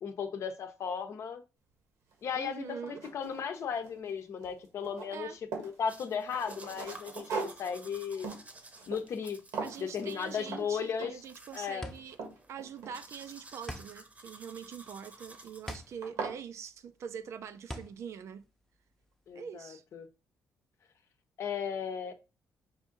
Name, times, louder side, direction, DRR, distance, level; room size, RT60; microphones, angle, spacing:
voice 1, 0.0-1.4 2.2-5.3 5.6-8.3 8.9-9.4 9.8-11.2 11.5-11.9 19.3-20.1 21.4-22.1, left 7 dB, 60° left, 0.7 m, -36 dB
sound 1, 2.1-2.2 2.7-4.1 4.4-5.8 6.3-9.3 9.5-9.9 10.5-10.7 11.0-11.3 11.8-13.3 14.8-15.2 15.7-15.8 16.0-16.4, right 4 dB, 85° right, 1.5 m, -40 dB
voice 2, 2.3-3.0 5.1-5.4 9.6-12.2 12.5-18.4 19.3-19.8, right 7 dB, 65° right, 0.5 m, -44 dB
sound 2, 5.9-16.1, right 2 dB, 25° right, 0.9 m, -53 dB
sound 3, 11.1-19.3, equal, 10° left, 0.7 m, -46 dB
4.9 x 2.6 x 3.8 m
cardioid pair, 85°, 5 cm